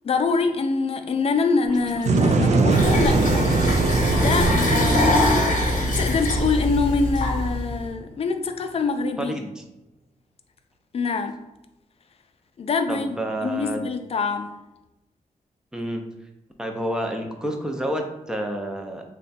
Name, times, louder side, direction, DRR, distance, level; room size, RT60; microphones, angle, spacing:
voice 1, 0.0-3.6 4.1-9.4 10.9-11.4 12.6-13.2 13.4-14.5, left 4 dB, 45° left, 7 dB, 0.4 m, -25 dB
sound 1, 1.6-6.0, right 1 dB, 30° right, 0.8 m, -40 dB
sound 2, 2.1-7.9, right 3 dB, 55° right, 0.4 m, -22 dB
sound 3, 2.7-7.8, left 1 dB, 70° left, 0.8 m, -23 dB
voice 2, 9.2-9.6 12.9-13.9 15.7-16.0 16.6-19.0, right 1 dB, 5° right, 3 dB, 0.6 m, -29 dB
3.4 x 2.2 x 4.0 m, 0.94 s
cardioid pair, 95°, 14 cm